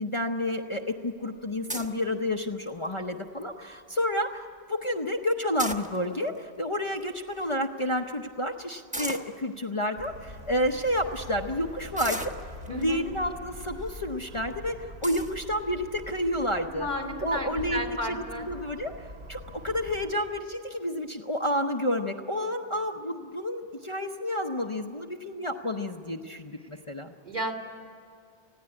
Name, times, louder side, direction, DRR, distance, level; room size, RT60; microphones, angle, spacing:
voice 1, 0.0-16.9 17.2-27.1, left 1 dB, 30° left, 1 dB, 0.8 m, -30 dB
sound 1, 1.7-2.0 2.7-3.0 3.4-3.5 3.7-4.1 5.4-6.3 7.0-7.1 7.3-7.5 8.9-9.3 10.0-10.1 10.7-10.9 12.0-12.8 13.6-13.9 14.4-14.5 15.0-15.4, right 1 dB, 10° right, 1.0 m, -36 dB
sound 2, 10.0-20.1, left 1 dB, 85° right, 2.5 m, -44 dB
voice 2, 12.7-13.0 16.6-18.5 26.7-26.8 27.2-27.5, right 1 dB, 45° right, 1 dB, 2.5 m, -33 dB
20.0 x 15.5 x 9.7 m, 2.3 s
omnidirectional pair, 1.1 m